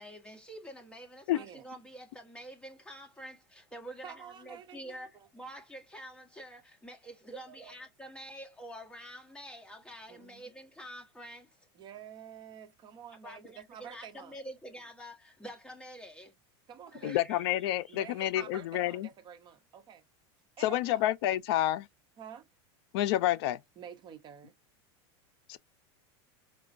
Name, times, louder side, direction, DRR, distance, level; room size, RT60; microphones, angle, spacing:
voice 1, 0.0-11.7 13.2-16.3 16.9-18.0 18.3-18.4, equal, 5° left, 1.2 m, -47 dB
voice 2, 1.3-1.7 4.0-5.3 7.3-7.8 10.1-10.4 11.7-14.3 16.7-17.2 17.9-20.0 20.6-21.0 22.2-22.5 23.8-24.5, right 8 dB, 30° right, 0.7 m, -48 dB
voice 3, 17.0-19.1 20.6-21.9 22.9-23.6 25.5-25.6, left 14 dB, 65° left, 0.4 m, -29 dB
4.8 x 2.2 x 2.5 m
supercardioid pair, 140°, 14 cm